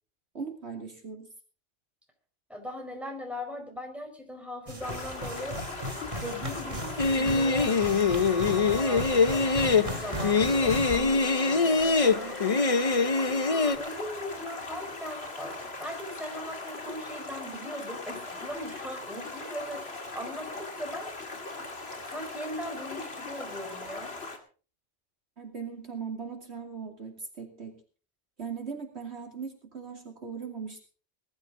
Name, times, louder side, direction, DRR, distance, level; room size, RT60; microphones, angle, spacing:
voice 1, 0.3-1.3 25.4-27.8 28.4-30.9, right 6 dB, 60° right, 3 dB, 2.9 m, -39 dB
voice 2, 2.5-5.6 6.2-7.7 8.7-12.8 13.5-19.8 20.1-21.1 22.1-24.1, equal, ahead, 2 dB, 4.8 m, -39 dB
sound 1, 4.7-11.0, right 1 dB, 30° right, 2.0 m, -36 dB
Stream, 4.8-24.4, left 3 dB, 55° left, 2.7 m, -40 dB
sound 2, 7.0-13.8, left 4 dB, 35° left, 0.8 m, -24 dB
20.5 x 13.0 x 3.8 m, 0.38 s
omnidirectional pair, 1.2 m